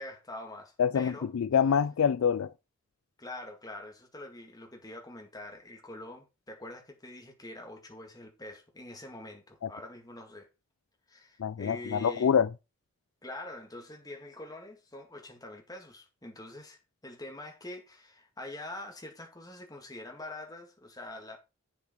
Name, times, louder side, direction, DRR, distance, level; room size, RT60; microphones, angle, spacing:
voice 1, 0.0-1.3 3.2-10.5 11.1-12.3 13.2-21.4, left 1 dB, 15° left, 2.0 m, -45 dB
voice 2, 0.8-2.5 11.4-12.5, left 7 dB, 75° left, 0.4 m, -26 dB
8.0 x 6.9 x 4.4 m
head